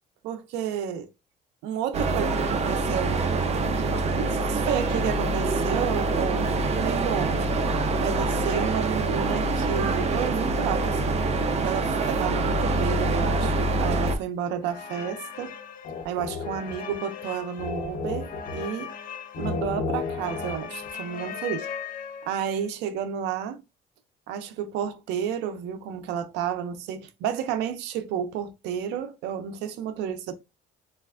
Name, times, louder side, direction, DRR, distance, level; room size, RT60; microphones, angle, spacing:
voice 1, 0.2-1.1 1.6-3.2 3.8-7.5 8.0-11.2 11.6-15.6 16.0-18.9 19.4-21.7 22.2-23.6 24.3-30.3, right 8 dB, 90° right, 0.5 m, -31 dB
sound 1, 1.9-14.2, right 3 dB, 40° right, 0.5 m, -25 dB
sound 2, 14.6-22.5, left 5 dB, 55° left, 0.5 m, -34 dB
3.2 x 2.4 x 2.4 m
cardioid pair, 110°, 17 cm